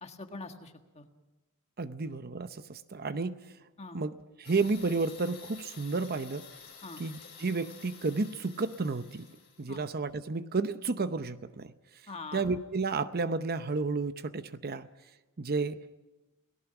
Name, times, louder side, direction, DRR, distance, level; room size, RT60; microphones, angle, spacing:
voice 1, 0.0-1.1 3.8-4.0 6.8-7.0 9.7-9.9 12.1-12.4, left 3 dB, 30° left, 5 dB, 1.7 m, -43 dB
voice 2, 1.8-3.4 3.9-4.1 4.4-6.5 7.0-9.3 9.6-11.7 12.3-14.9 15.4-15.8, right 3 dB, 45° right, 12 dB, 0.7 m, -32 dB
sound 1, 4.4-9.8, left 7 dB, 45° left, 6.2 m, -51 dB
29.0 x 18.0 x 6.0 m, 1.1 s
head